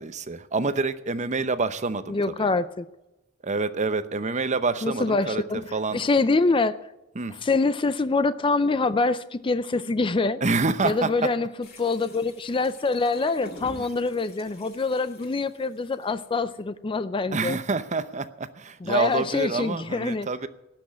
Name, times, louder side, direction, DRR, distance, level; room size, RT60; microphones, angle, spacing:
voice 1, 0.0-2.5 3.4-5.4 5.7-6.0 7.2-7.3 10.4-11.1 13.8-13.9 17.3-20.5, right 4 dB, 35° right, 12 dB, 0.7 m, -27 dB
voice 2, 2.1-2.9 4.8-6.8 7.3-10.4 10.8-11.5 11.8-17.6 18.8-20.3, left 3 dB, 25° left, 14 dB, 0.4 m, -25 dB
sound 1, 11.6-16.6, left 2 dB, 50° left, 5.6 m, -48 dB
18.5 x 6.2 x 9.6 m, 0.94 s
head